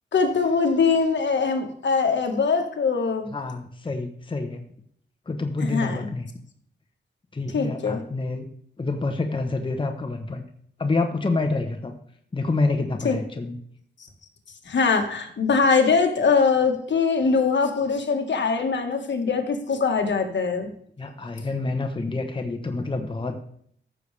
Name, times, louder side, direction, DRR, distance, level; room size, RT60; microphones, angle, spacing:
voice 1, 0.1-3.3 5.6-6.1 7.5-8.0 13.0-13.2 14.7-20.7, left 5 dB, 70° left, 5 dB, 1.5 m, -22 dB
voice 2, 3.3-4.6 5.3-6.3 7.3-8.5 8.8-10.4 10.8-11.9 12.3-13.6 21.0-23.4, left 3 dB, 25° left, 4 dB, 0.9 m, -27 dB
15.0 x 6.7 x 3.3 m, 0.65 s
wide cardioid pair, 110°, 20 cm